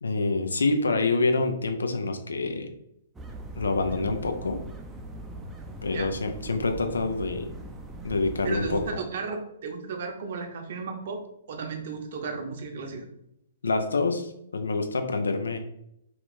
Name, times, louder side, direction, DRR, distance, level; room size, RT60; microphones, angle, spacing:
voice 1, 0.0-2.7 3.5-4.6 5.8-7.5 8.0-8.8 13.6-15.6, left 3 dB, 75° left, 6 dB, 0.5 m, -26 dB
sound 1, 3.1-8.9, right 2 dB, 10° right, 0.4 m, -40 dB
voice 2, 8.4-11.2 11.5-13.1, right 4 dB, 55° right, 4 dB, 0.7 m, -34 dB
2.9 x 2.3 x 4.1 m, 0.78 s
figure-of-eight pair, 120°, 0 cm